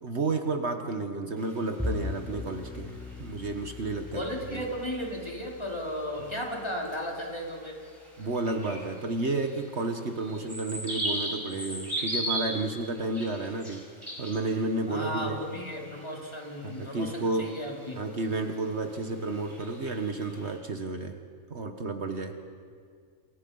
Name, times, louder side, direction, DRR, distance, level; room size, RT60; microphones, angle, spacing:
voice 1, 0.0-4.2 4.5-4.7 8.2-13.8 14.2-15.4 16.6-17.5 18.0-21.2 21.5-22.4, right 3 dB, 55° right, 5 dB, 1.7 m, -31 dB
sound 1, 1.4-20.6, right 1 dB, 20° right, 5.2 m, -41 dB
Bowed string instrument, 1.8-8.2, left 3 dB, 5° left, 4.4 m, -40 dB
voice 2, 4.1-7.8 14.9-18.0, equal, 20° left, -1 dB, 4.0 m, -35 dB
29.5 x 28.0 x 5.6 m, 2.1 s
omnidirectional pair, 1.4 m